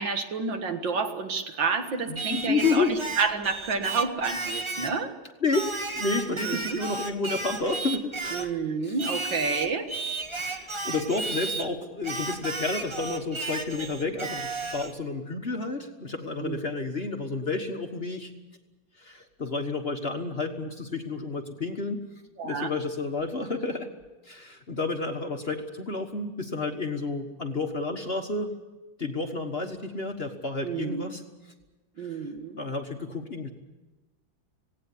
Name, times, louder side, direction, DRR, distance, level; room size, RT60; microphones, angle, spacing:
voice 1, 0.0-5.1 6.3-6.8 8.3-9.9 16.4-16.6 22.4-22.7 30.6-31.0 32.0-32.6, right 4 dB, 70° right, 6 dB, 2.3 m, -29 dB
voice 2, 2.1-3.0 5.4-8.5 8.8-8.9 10.4-18.3 19.0-22.0 22.4-23.9 24.2-28.5 29.0-31.2 32.0-32.2 32.6-33.5, left 3 dB, 35° left, 4 dB, 1.4 m, -30 dB
Singing, 2.2-5.0 5.5-8.5 9.0-11.7 12.0-14.9, right 3 dB, 40° right, 0.4 m, -34 dB
18.0 x 17.0 x 9.8 m, 1.1 s
omnidirectional pair, 2.1 m